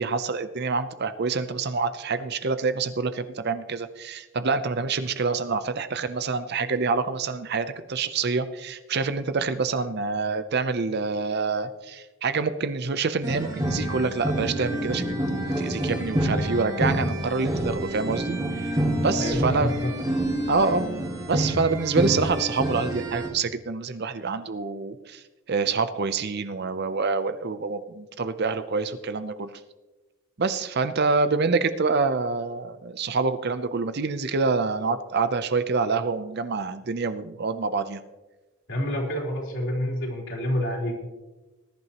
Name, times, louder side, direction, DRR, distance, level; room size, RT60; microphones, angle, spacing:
voice 1, 0.0-15.2 15.6-18.7 19.0-19.8 20.5-20.9 21.3-25.2 25.5-29.5 30.4-38.0, right 4 dB, 50° right, 11 dB, 0.6 m, -26 dB
sound 1, 13.2-23.3, right 1 dB, 15° right, 2.1 m, -27 dB
voice 2, 19.1-19.9 38.7-41.0, equal, 60° left, -1 dB, 3.7 m, -28 dB
20.0 x 11.0 x 3.0 m, 1.2 s
head